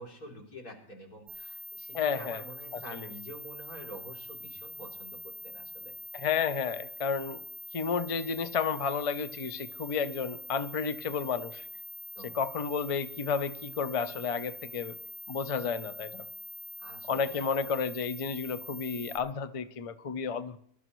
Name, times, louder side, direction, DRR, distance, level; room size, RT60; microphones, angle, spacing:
voice 1, 0.0-5.9 12.2-12.4 16.8-17.5, equal, 75° left, -1 dB, 3.7 m, -47 dB
sound 1, 1.3-19.2, left 1 dB, 25° left, 3.3 m, -44 dB
voice 2, 1.9-2.4 2.9-3.0 6.1-7.4 7.7-11.7 12.3-15.0 15.3-16.2 17.1-20.6, left 6 dB, 55° left, 12 dB, 0.3 m, -32 dB
23.0 x 12.5 x 3.1 m, 0.63 s
omnidirectional pair, 1.6 m